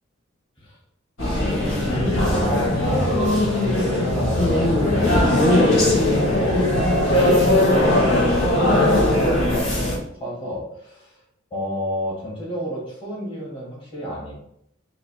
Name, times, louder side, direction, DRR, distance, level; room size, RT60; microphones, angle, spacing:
sound 1, 1.2-10.0, left 1 dB, 80° left, 1.6 m, -19 dB
voice 1, 1.4-3.1 3.8-9.9 10.2-11.2 11.5-14.4, equal, 25° left, -8 dB, 1.8 m, -31 dB
3.8 x 3.0 x 4.6 m, 0.74 s
head